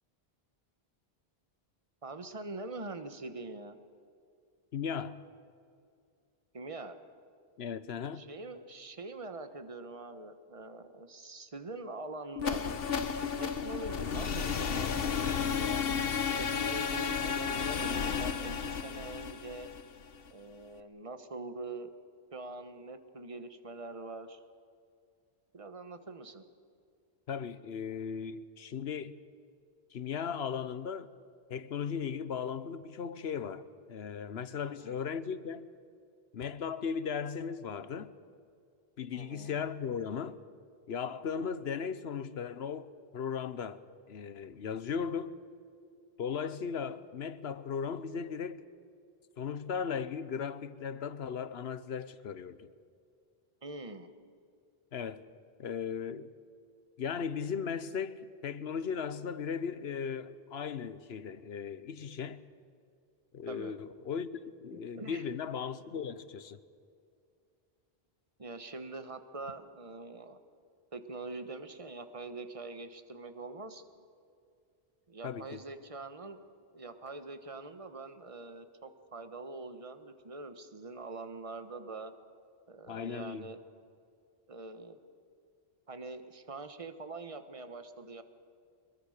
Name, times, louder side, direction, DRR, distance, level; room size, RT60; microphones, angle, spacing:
voice 1, 2.0-3.8 6.5-7.0 8.1-12.6 13.4-15.9 16.4-19.7 20.3-21.9 22.3-24.4 25.5-26.4 34.6-35.0 39.1-39.6 53.6-54.1 63.5-63.7 64.7-65.3 68.4-70.4 70.9-73.8 75.1-76.4 76.7-82.1 82.7-83.6 84.5-85.0 85.9-88.2, right 3 dB, 35° right, 1.3 m, -44 dB
voice 2, 4.7-5.2 7.6-8.2 27.3-29.2 29.9-31.1 31.5-35.7 36.3-38.1 39.0-40.4 40.9-42.9 43.1-43.8 44.1-45.4 46.2-48.6 49.4-52.7 54.9-55.2 55.6-56.3 57.0-62.4 63.3-66.6 75.2-75.6 82.9-83.5, left 6 dB, 85° left, 1.1 m, -37 dB
sound 1, 12.4-20.3, left 6 dB, 70° left, 1.2 m, -33 dB
24.0 x 22.0 x 6.6 m
omnidirectional pair, 1.0 m